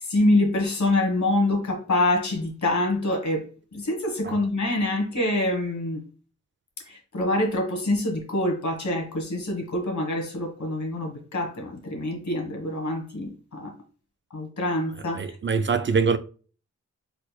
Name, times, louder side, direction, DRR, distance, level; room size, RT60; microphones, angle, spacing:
voice 1, 0.0-6.0 6.9-13.7 14.3-15.2, left 1 dB, 70° left, 1.6 m, -25 dB
voice 2, 15.1-16.2, right 5 dB, 40° right, 0.4 m, -23 dB
4.4 x 4.1 x 2.3 m
cardioid pair, 50°, 30 cm